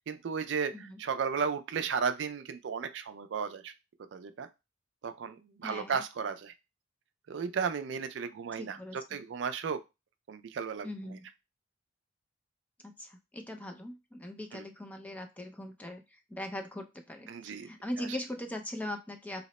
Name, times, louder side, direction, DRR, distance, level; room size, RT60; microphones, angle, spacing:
voice 1, 0.1-3.7 4.1-4.5 5.0-6.5 7.3-9.8 10.3-10.9 14.5-14.6 17.3-17.7 18.0-18.1, right 6 dB, 65° right, 10 dB, 0.4 m, -34 dB
voice 2, 5.6-6.0 8.6-9.2 10.8-11.3 12.8-19.5, left 1 dB, 10° left, 5 dB, 0.3 m, -41 dB
2.8 x 2.1 x 4.0 m, 0.25 s
head